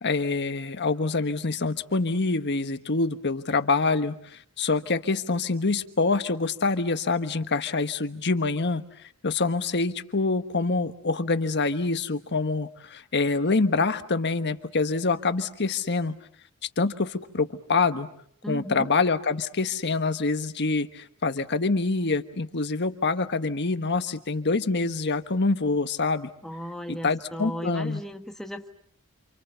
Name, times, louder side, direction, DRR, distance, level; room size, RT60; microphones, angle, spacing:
voice 1, 0.0-8.8 9.2-16.1 16.8-18.1 18.5-26.3 26.9-28.0, left 3 dB, 50° left, 10 dB, 1.3 m, -26 dB
voice 2, 18.4-18.9 26.4-28.7, equal, ahead, 4 dB, 1.4 m, -36 dB
28.5 x 28.0 x 6.9 m, 0.64 s
head